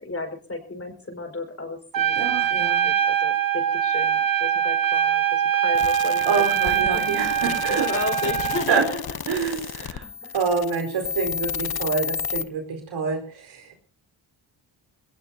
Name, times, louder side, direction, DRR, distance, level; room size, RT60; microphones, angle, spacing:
voice 1, 0.0-2.4 2.8-7.3 7.9-9.4 9.8-10.3, left 2 dB, 30° left, 5 dB, 5.3 m, -34 dB
Trumpet, 1.9-8.7, right 9 dB, 45° right, 1.3 m, -23 dB
voice 2, 2.1-2.9 6.3-8.0 8.7-8.9 9.3-10.0 10.3-13.8, right 5 dB, 80° right, 4 dB, 4.6 m, -27 dB
sound 1, 5.7-12.4, left 7 dB, 50° left, 1.0 m, -32 dB
21.5 x 18.5 x 2.8 m, 0.39 s
cardioid pair, 65°, 46 cm